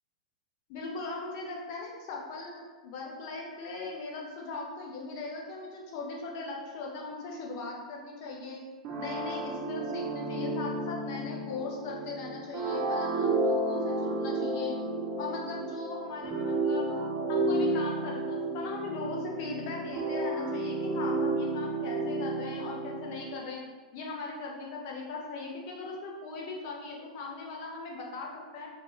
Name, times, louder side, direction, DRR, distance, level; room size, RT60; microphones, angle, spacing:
voice 1, 0.7-8.6 9.0-14.7 15.2-17.0 17.3-23.6 23.9-28.7, left 3 dB, 40° left, -2 dB, 0.8 m, -39 dB
sound 1, 8.8-23.4, right 2 dB, 30° right, 0.7 m, -32 dB
4.0 x 2.3 x 3.1 m, 1.4 s
figure-of-eight pair, 100°, 3 cm